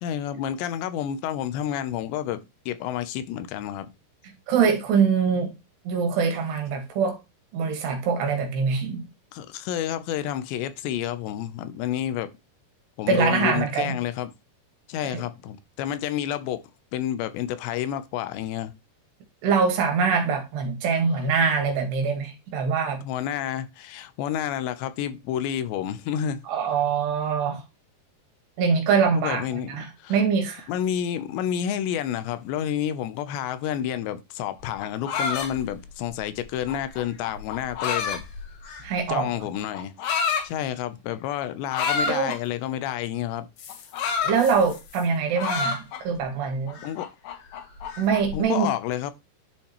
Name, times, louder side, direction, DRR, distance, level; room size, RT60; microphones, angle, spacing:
voice 1, 0.0-3.9 9.3-12.3 13.0-14.3 14.9-16.6 16.9-18.7 23.0-26.4 29.2-30.2 30.7-38.2 39.1-39.9 40.4-43.5 46.8-47.1 48.3-49.1, left 10 dB, 85° left, 2.9 m, -29 dB
voice 2, 4.5-5.5 5.9-7.2 7.5-9.1 13.1-14.0 15.1-15.2 19.4-23.0 26.5-27.6 28.6-29.4 29.7-30.7 38.8-39.3 42.1-42.3 44.2-46.8 48.0-48.7, right 5 dB, 75° right, 3.7 m, -23 dB
sound 1, 34.6-39.0 39.7-40.5 41.7-42.4 43.6-45.0 45.4-46.2 46.7-48.3, left 5 dB, 65° left, 2.7 m, -29 dB
11.0 x 5.6 x 3.0 m
omnidirectional pair, 5.0 m